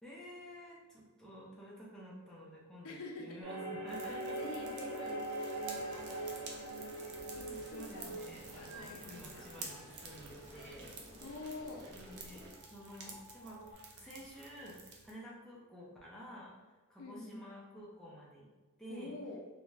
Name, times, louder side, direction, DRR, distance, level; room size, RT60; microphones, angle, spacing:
voice 1, 0.0-4.4 5.0-5.1 5.9-6.6 7.5-10.9 11.9-18.5 18.8-19.1, equal, ahead, -6 dB, 0.5 m, -51 dB
voice 2, 2.8-3.4 4.1-5.2 7.3-8.2 8.5-9.4 11.2-11.8 17.0-17.5 18.9-19.4, left 2 dB, 70° left, 1 dB, 0.5 m, -46 dB
sound 1, 3.4-10.2 12.5-13.7, right 2 dB, 75° right, 0.9 m, -43 dB
sound 2, 3.9-15.1, right 4 dB, 55° right, 0.5 m, -52 dB
sound 3, 5.5-12.5, equal, 15° right, 1.1 m, -54 dB
2.5 x 2.2 x 3.1 m, 1.3 s
head